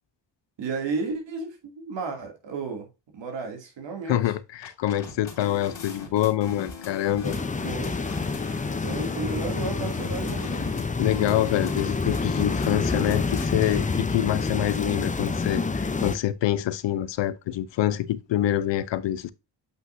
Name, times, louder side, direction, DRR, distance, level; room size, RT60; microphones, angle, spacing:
voice 1, 0.6-2.9 3.1-4.2 7.3-8.0 8.8-10.7, right 4 dB, 85° right, 2.6 m, -33 dB
voice 2, 4.1-7.4 11.0-19.3, left 12 dB, 85° left, 0.7 m, -26 dB
sound 1, 4.6-14.0, left 5 dB, 70° left, 2.6 m, -41 dB
sound 2, 7.2-16.2, left 4 dB, 20° left, 0.6 m, -28 dB
8.0 x 5.6 x 2.6 m
cardioid pair, 95°, 42 cm